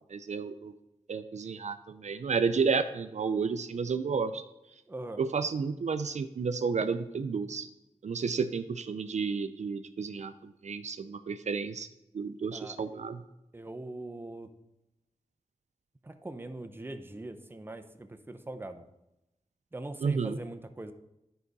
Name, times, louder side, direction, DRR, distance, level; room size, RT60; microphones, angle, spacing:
voice 1, 0.1-0.7 1.1-4.4 5.2-7.7 8.0-11.9 12.1-13.2 20.0-20.4, right 5 dB, 70° right, 10 dB, 0.4 m, -31 dB
voice 2, 4.9-5.2 12.5-12.8 13.5-14.5 16.0-18.8 19.7-20.9, right 2 dB, 15° right, 7 dB, 0.6 m, -41 dB
10.0 x 4.8 x 4.0 m, 0.90 s
wide cardioid pair, 95°, 12 cm